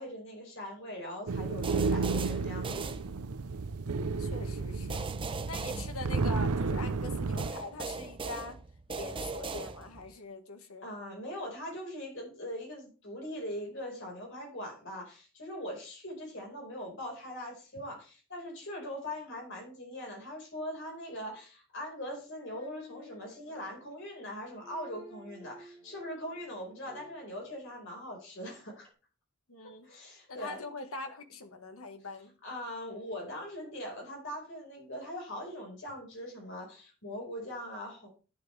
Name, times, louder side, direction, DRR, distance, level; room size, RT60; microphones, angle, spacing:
voice 1, 0.0-3.0 5.5-5.9 10.8-28.9 29.8-30.6 32.4-38.1, equal, 55° left, 4.7 m, -41 dB
sound 1, 1.3-7.5, right 4 dB, 85° right, 0.6 m, -32 dB
sound 2, 1.6-3.6 4.9-6.7 7.4-10.2, right 4 dB, 25° right, 0.6 m, -39 dB
voice 2, 4.2-5.0 5.5-8.6 8.9-10.9 29.5-29.9 30.3-32.3, left 3 dB, 75° left, 1.5 m, -43 dB
sound 3, 21.9-27.8 28.8-28.9, left 1 dB, 10° left, 5.3 m, -54 dB
11.0 x 9.7 x 3.3 m
head